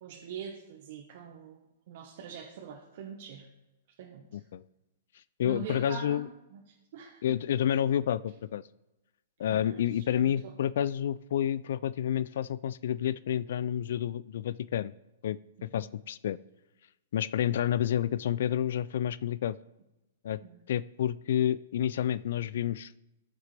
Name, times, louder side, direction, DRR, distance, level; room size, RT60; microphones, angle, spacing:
voice 1, 0.0-3.5 4.0-4.4 5.4-6.2 6.5-6.6 6.9-7.4 9.5-9.8 10.2-10.5 15.7-15.9 20.4-20.6, right 7 dB, 55° right, 0 dB, 1.2 m, -43 dB
voice 2, 4.3-4.6 5.4-6.3 7.2-8.6 9.4-14.9 15.2-16.4 17.1-19.6 20.2-20.4 20.7-22.9, left 10 dB, 70° left, 18 dB, 0.3 m, -29 dB
14.0 x 6.5 x 3.4 m, 0.98 s
hypercardioid pair, 145°, 0 cm